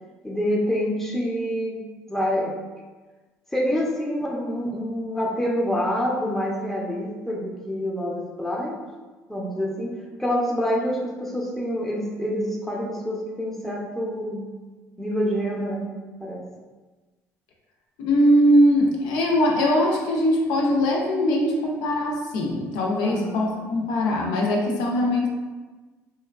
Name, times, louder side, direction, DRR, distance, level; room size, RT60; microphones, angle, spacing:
voice 1, 0.2-1.8 2.1-2.5 3.5-8.8 9.3-14.5 15.0-15.9 16.2-16.4 23.0-23.5, equal, 5° left, -2 dB, 0.6 m, -27 dB
voice 2, 18.0-25.3, equal, 80° left, -1 dB, 0.4 m, -21 dB
2.9 x 2.2 x 2.3 m, 1.3 s
supercardioid pair, 75°, 7 cm